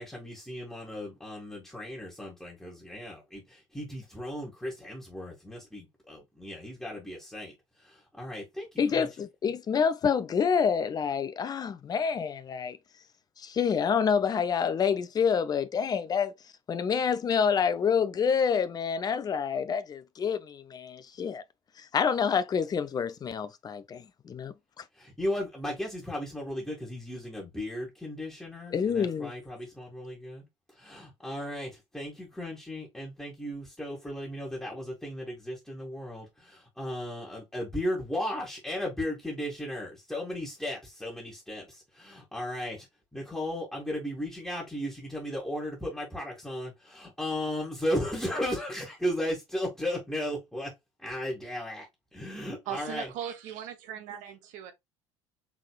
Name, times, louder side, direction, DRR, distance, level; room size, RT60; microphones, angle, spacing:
voice 1, 0.0-9.1 25.0-30.5 30.8-42.9 43.1-50.7 51.0-51.9 52.1-53.1, left 1 dB, ahead, 1.7 m, -35 dB
voice 2, 8.8-12.8 13.4-16.3 16.7-21.4 21.8-24.8 28.7-29.3, left 6 dB, 25° left, 0.6 m, -27 dB
voice 3, 52.7-54.7, right 10 dB, 55° right, 1.0 m, -38 dB
4.8 x 3.7 x 2.3 m
figure-of-eight pair, 60°, 15 cm